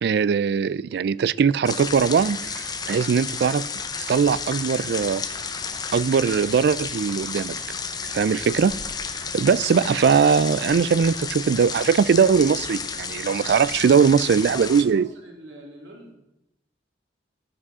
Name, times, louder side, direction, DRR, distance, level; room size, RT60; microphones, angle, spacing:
voice 1, 0.0-3.6 4.1-5.2 5.9-7.6 8.1-8.7 9.3-15.1, right 6 dB, 60° right, 19 dB, 0.3 m, -20 dB
sound 1, 1.6-14.8, left 5 dB, 20° left, 0.7 m, -32 dB
voice 2, 14.3-16.2, right 1 dB, 80° right, 1 dB, 2.5 m, -43 dB
12.0 x 6.1 x 6.2 m, 0.89 s
head